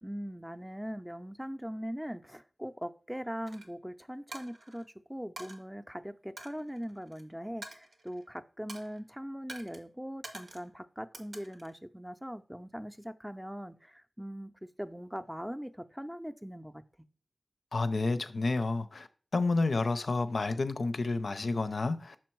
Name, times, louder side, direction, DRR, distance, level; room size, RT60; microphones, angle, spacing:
voice 1, 0.0-16.8, equal, 5° right, 0.5 m, -41 dB
Coin (dropping), 3.5-3.7 4.3-4.9 5.4-5.6 6.4-7.2 7.6-8.3 8.7-9.0 9.5-9.8 10.2-10.7 11.1-11.8, right 2 dB, 85° right, 0.9 m, -47 dB
voice 2, 17.7-22.2, left 3 dB, 75° left, 0.5 m, -30 dB
6.0 x 4.3 x 4.5 m
cardioid pair, 45°, 0 cm